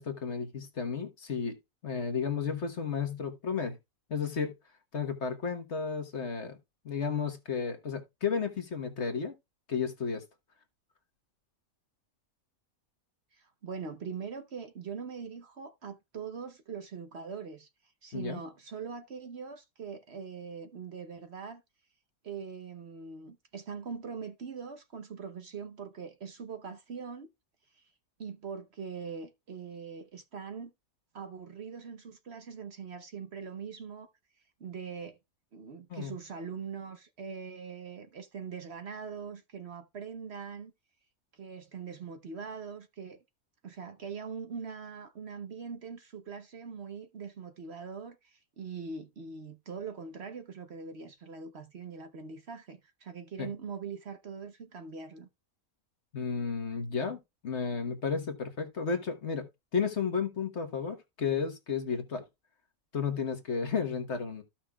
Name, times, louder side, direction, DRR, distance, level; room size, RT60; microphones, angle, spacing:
voice 1, 0.0-1.5 1.8-3.8 4.1-4.5 4.9-6.6 6.8-9.3 9.7-10.2 18.1-18.4 35.9-36.1 53.4-53.5 56.1-59.5 59.7-62.2 62.9-64.4, left 6 dB, 55° left, 1.5 m, -33 dB
voice 2, 13.3-17.7 18.0-21.6 22.2-27.3 27.7-27.8 28.2-30.7 31.1-34.1 34.6-35.2 35.5-40.7 41.3-43.2 43.6-55.3, right 6 dB, 50° right, 1.1 m, -42 dB
14.5 x 5.9 x 2.3 m
omnidirectional pair, 1.5 m